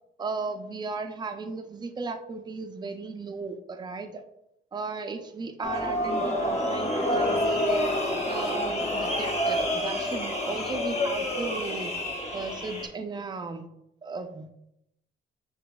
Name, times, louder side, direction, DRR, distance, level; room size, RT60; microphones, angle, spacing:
voice 1, 0.2-4.2 4.7-11.9 12.3-13.7 14.0-14.7, right 4 dB, 20° right, 7 dB, 0.4 m, -36 dB
sound 1, 5.6-12.9, left 1 dB, 35° left, 0.8 m, -28 dB
5.7 x 2.9 x 2.2 m, 0.82 s
cardioid pair, 90°, 20 cm